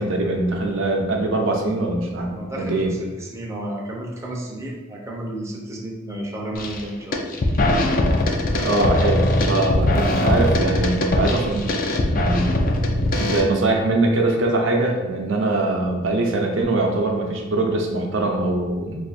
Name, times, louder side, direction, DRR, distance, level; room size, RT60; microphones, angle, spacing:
voice 1, 0.0-2.9 8.5-11.8 12.1-12.5 13.2-19.0, right 2 dB, 70° right, 1 dB, 0.5 m, -22 dB
voice 2, 2.3-7.3, right 1 dB, 15° right, -3 dB, 0.5 m, -32 dB
sound 1, 6.6-6.8 7.1-13.4, left 1 dB, 45° left, 0.4 m, -20 dB
2.6 x 2.4 x 4.0 m, 1.3 s
head